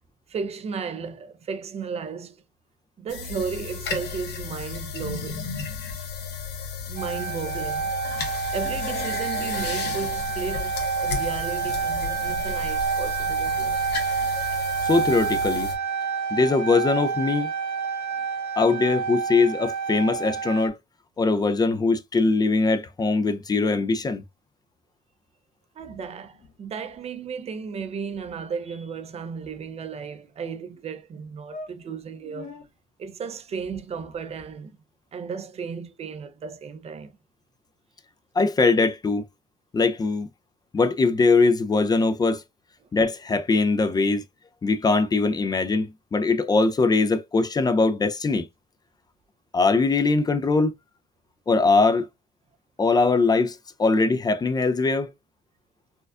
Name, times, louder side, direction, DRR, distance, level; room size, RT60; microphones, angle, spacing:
voice 1, 0.3-2.4 3.0-5.5 6.9-7.9 8.5-10.7 11.0-13.8 25.8-32.5 33.0-34.7 35.1-37.1, right 5 dB, 40° right, 0.5 m, -34 dB
sound 1, 3.1-15.7, left 6 dB, 80° left, 1.2 m, -33 dB
sound 2, 7.0-20.7, right 6 dB, 60° right, 1.2 m, -28 dB
voice 2, 14.8-15.7 16.3-17.5 18.6-20.8 21.2-24.2 38.4-39.2 39.7-40.3 40.7-42.4 42.9-44.2 44.6-48.5 49.5-50.7 51.5-52.1 52.8-55.1, left 3 dB, 25° left, 0.5 m, -21 dB
sound 3, 25.8-26.6 26.9-27.0 27.3-27.6 27.8-27.9 28.1-28.4 29.0-30.1 30.7-30.8 31.1-31.2 31.5-32.7 33.5-34.5, left 3 dB, 45° left, 1.6 m, -46 dB
4.3 x 2.4 x 2.3 m
cardioid pair, 110°, 17 cm